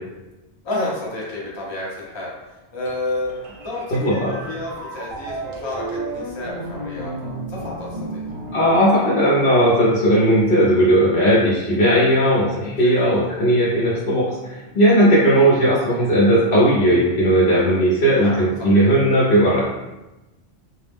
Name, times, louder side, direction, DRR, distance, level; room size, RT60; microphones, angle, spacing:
voice 1, 0.6-3.3 3.6-8.2 12.7-13.1 18.1-18.9, left 2 dB, 30° left, -5 dB, 0.6 m, -30 dB
sound 1, 2.9-9.6, right 2 dB, 65° right, 0.9 m, -33 dB
voice 2, 3.9-4.3 8.5-19.6, equal, 60° left, -7 dB, 0.8 m, -17 dB
2.3 x 2.0 x 3.3 m, 1.0 s
omnidirectional pair, 1.2 m